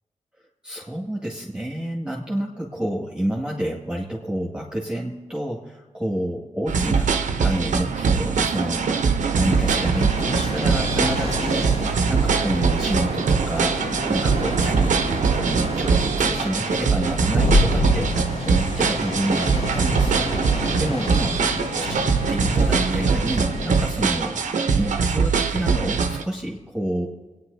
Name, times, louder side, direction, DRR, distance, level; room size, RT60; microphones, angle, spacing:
voice 1, 0.6-11.6 12.0-13.8 14.1-21.3 21.8-27.1, right 1 dB, 5° right, -3 dB, 1.9 m, -29 dB
sound 1, 6.7-26.2, right 5 dB, 90° right, 0.9 m, -22 dB
sound 2, 7.9-16.3, right 6 dB, 60° right, 0.5 m, -31 dB
sound 3, 9.5-23.8, left 1 dB, 75° left, 4.4 m, -28 dB
26.5 x 9.6 x 2.8 m, 1.3 s
wide cardioid pair, 110°, 12 cm